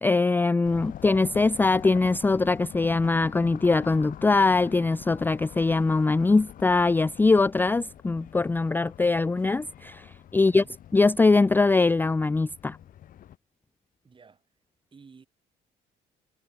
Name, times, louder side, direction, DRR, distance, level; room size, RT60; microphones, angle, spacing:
voice 1, 0.0-10.6 10.9-12.8, left 3 dB, 10° left, 0.4 m, -22 dB
sound 1, 0.6-13.4, left 11 dB, 55° left, 1.2 m, -44 dB
voice 2, 10.4-10.8 14.0-14.5 14.9-15.3, right 5 dB, 30° right, 7.9 m, -53 dB
cardioid pair, 110°, 17 cm